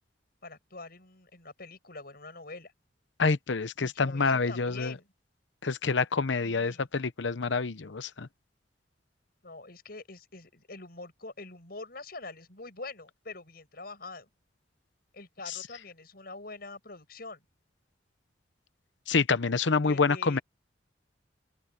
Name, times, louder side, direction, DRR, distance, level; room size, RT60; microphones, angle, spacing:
voice 1, 0.4-2.7 3.8-5.1 6.4-6.9 9.4-14.3 15.1-17.4 19.8-20.4, left 3 dB, 55° left, 7.9 m, -45 dB
voice 2, 3.2-4.9 5.6-8.3 19.1-20.4, left 4 dB, 80° left, 0.8 m, -27 dB
open air
head